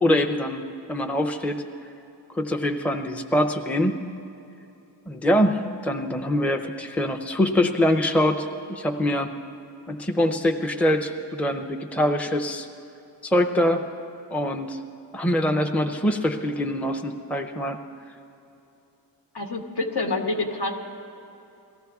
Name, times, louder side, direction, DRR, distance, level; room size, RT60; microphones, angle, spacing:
voice 1, 0.0-1.6 2.3-4.0 5.1-9.3 9.9-12.7 13.2-13.8 14.3-14.8 15.1-17.8, left 1 dB, 5° left, 4 dB, 0.6 m, -24 dB
voice 2, 19.3-20.8, left 2 dB, 65° left, 3 dB, 1.3 m, -27 dB
18.0 x 14.0 x 3.5 m, 2.9 s
cardioid pair, 75°, 43 cm